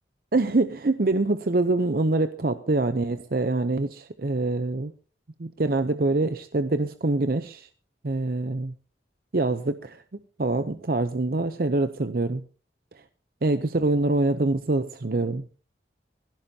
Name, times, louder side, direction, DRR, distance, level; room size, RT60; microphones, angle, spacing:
voice 1, 0.3-4.9 5.4-7.7 8.0-8.7 9.3-10.0 10.4-12.4 13.4-15.4, right 2 dB, 50° right, 10 dB, 0.7 m, -25 dB
21.5 x 16.5 x 2.8 m, 0.37 s
head